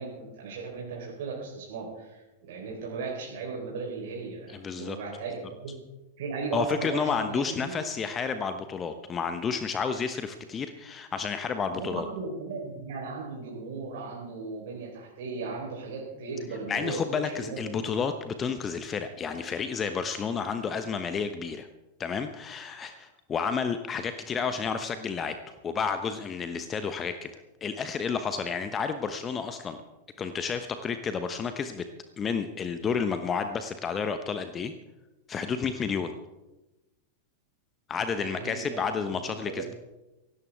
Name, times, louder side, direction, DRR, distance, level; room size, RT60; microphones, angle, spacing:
voice 1, 0.0-5.7 6.2-7.7 11.7-17.9 38.1-38.8 39.4-39.6, right 4 dB, 55° right, -3 dB, 3.9 m, -37 dB
voice 2, 4.5-5.0 6.5-12.1 16.7-21.7 22.0-25.3 25.6-27.3 27.6-29.8 30.2-31.8 32.2-34.7 35.3-36.1 37.9-39.7, left 6 dB, 25° left, 9 dB, 1.0 m, -31 dB
18.0 x 16.5 x 3.5 m, 1.0 s
figure-of-eight pair, 90°, 0 cm